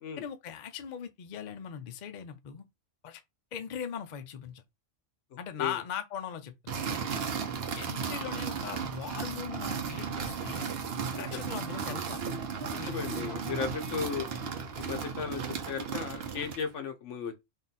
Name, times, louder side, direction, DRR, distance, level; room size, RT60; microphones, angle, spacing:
voice 1, 0.2-2.7 3.0-3.2 3.5-4.6 5.4-6.8 7.7-10.7 11.1-12.2 12.8-13.4, left 8 dB, 55° left, 0.5 m, -40 dB
voice 2, 5.3-5.7 11.1-11.2 12.7-14.3 14.7-17.3, left 6 dB, 75° left, 1.1 m, -36 dB
sound 1, 6.7-16.7, right 6 dB, 55° right, 0.9 m, -35 dB
3.6 x 2.4 x 4.0 m
omnidirectional pair, 1.3 m